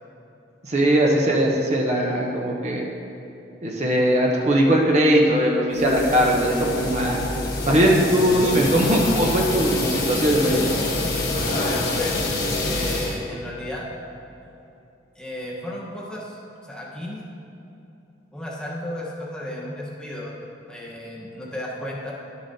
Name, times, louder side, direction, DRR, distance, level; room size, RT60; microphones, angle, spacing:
voice 1, 0.6-2.9 3.6-7.2 7.7-10.6, equal, 40° right, -1 dB, 0.7 m, -20 dB
sound 1, 5.7-13.2, left 2 dB, 60° left, 1.3 m, -26 dB
voice 2, 11.5-12.3 12.6-13.8 15.1-17.2 18.3-20.3 20.7-22.1, left 1 dB, 5° left, -5 dB, 1.0 m, -33 dB
11.5 x 6.9 x 2.7 m, 2.8 s
head